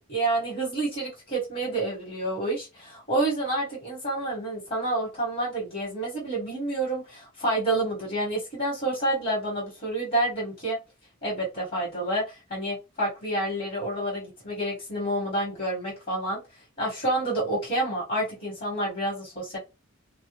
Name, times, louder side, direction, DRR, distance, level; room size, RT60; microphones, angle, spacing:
voice 1, 0.1-10.8 11.2-16.4 16.8-19.6, right 1 dB, 45° left, -5 dB, 1.4 m, -29 dB
2.4 x 2.2 x 3.0 m, 0.26 s
head